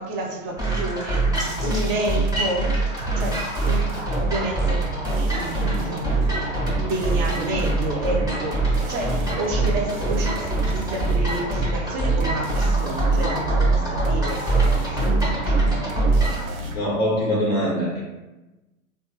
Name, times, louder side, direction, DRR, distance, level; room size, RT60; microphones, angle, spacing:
voice 1, 0.0-2.8 3.1-3.9 4.1-4.9 5.1-15.8, right 2 dB, 40° right, 0 dB, 0.7 m, -30 dB
sound 1, 0.6-16.5, right 2 dB, 10° right, 0.7 m, -23 dB
sound 2, 1.2-2.5 3.0-16.8, right 2 dB, 70° right, 0.8 m, -34 dB
voice 2, 16.7-18.0, equal, 25° left, -5 dB, 0.3 m, -23 dB
2.8 x 2.3 x 2.9 m, 1.1 s
hypercardioid pair, 115°, 43 cm